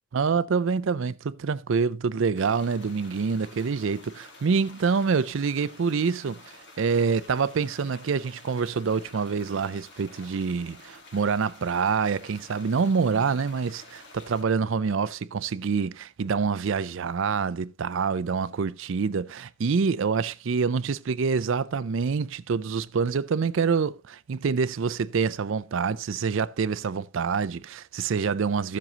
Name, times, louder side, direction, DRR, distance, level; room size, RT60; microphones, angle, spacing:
voice 1, 0.1-6.4 6.8-28.8, right 5 dB, 60° right, 0.4 m, -26 dB
sound 1, 2.3-14.4, left 2 dB, 50° left, 1.7 m, -50 dB
13.5 x 7.5 x 2.9 m
head